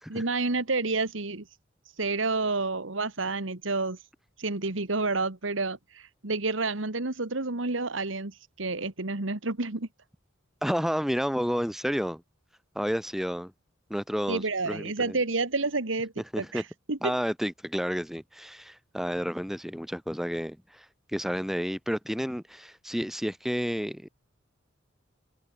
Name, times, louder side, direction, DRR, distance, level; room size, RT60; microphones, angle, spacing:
voice 1, 0.1-1.5 2.0-4.0 4.4-9.9 14.3-16.6 16.9-17.1, right 3 dB, 85° right, 2.0 m, -29 dB
voice 2, 10.6-12.2 12.8-13.5 13.9-15.2 16.3-16.6 17.0-20.9 21.1-24.1, equal, ahead, 2.2 m, -31 dB
head